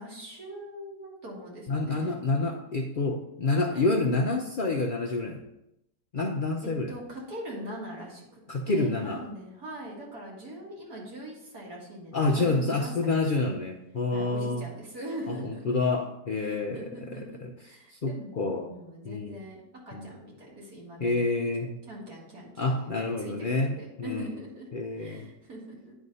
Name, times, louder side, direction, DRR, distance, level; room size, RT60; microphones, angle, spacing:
voice 1, 0.0-2.1 3.7-3.9 6.6-8.4 8.7-13.2 14.1-15.8 16.4-19.6 19.9-21.3 21.9-22.9 23.2-24.7 25.0-25.9, right 1 dB, 65° right, -4 dB, 2.5 m, -42 dB
voice 2, 1.7-5.4 6.1-6.9 8.5-9.2 12.1-14.6 15.3-17.5 17.9-18.7 19.0-19.4 19.9-20.0 21.0-21.7 22.6-23.7 24.0-24.3 24.7-25.3, left 3 dB, 80° left, 1 dB, 0.4 m, -28 dB
9.5 x 3.5 x 5.4 m, 0.86 s
omnidirectional pair, 1.7 m